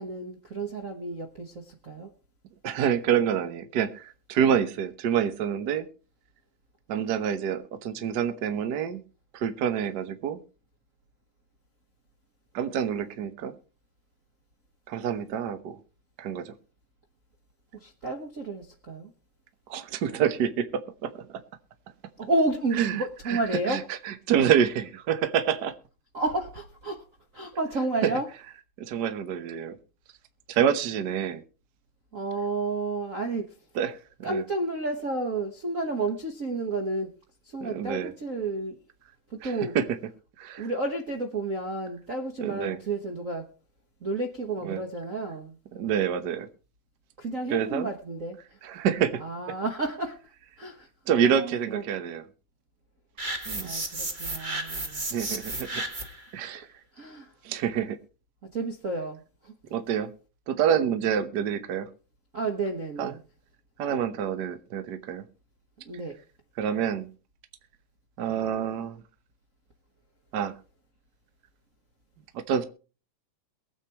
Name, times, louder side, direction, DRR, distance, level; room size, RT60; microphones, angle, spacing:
voice 1, 0.0-2.1 17.7-19.1 22.2-23.9 24.4-24.5 26.1-27.0 27.3-28.3 32.1-33.5 34.2-37.1 37.4-38.8 39.3-39.8 40.6-43.5 44.0-46.4 47.2-48.6 49.2-50.2 50.6-51.9 53.6-55.0 56.9-57.3 58.5-59.5 62.3-63.2 65.8-66.2, right 2 dB, 55° right, 0.9 m, -31 dB
voice 2, 2.6-5.9 6.9-9.0 9.3-10.4 12.5-13.5 14.9-15.8 16.2-16.5 19.7-21.4 22.8-23.0 23.3-23.4 23.7-25.7 28.0-28.1 28.8-29.8 30.5-31.4 33.7-34.4 37.6-38.1 39.4-39.8 40.4-40.7 42.4-42.8 44.6-44.8 45.7-46.5 47.5-47.9 48.6-49.2 51.1-52.2 53.5-53.7 55.1-55.8 56.3-56.7 57.4-58.0 59.7-60.1 60.5-61.9 63.0-63.1 63.8-65.2 66.6-67.1 68.2-69.0 70.3-70.6 72.3-72.6, right 8 dB, 90° right, 0.9 m, -27 dB
sound 1, 53.2-56.3, right 2 dB, 25° right, 1.1 m, -33 dB
22.5 x 8.3 x 3.0 m
omnidirectional pair, 3.4 m